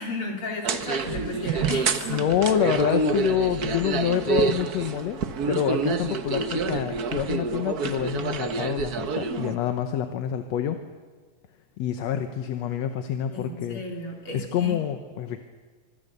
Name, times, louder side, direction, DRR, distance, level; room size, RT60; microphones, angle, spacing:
voice 1, 0.0-2.2 2.5-2.6 13.3-14.8, left 2 dB, 45° left, 1 dB, 4.4 m, -34 dB
sound 1, 0.6-9.5, right 5 dB, 65° right, 0.9 m, -27 dB
voice 2, 2.1-5.2 5.5-10.8 11.8-13.8 14.3-15.4, left 10 dB, 70° left, 8 dB, 2.1 m, -27 dB
26.0 x 25.0 x 6.8 m, 1.5 s
omnidirectional pair, 3.5 m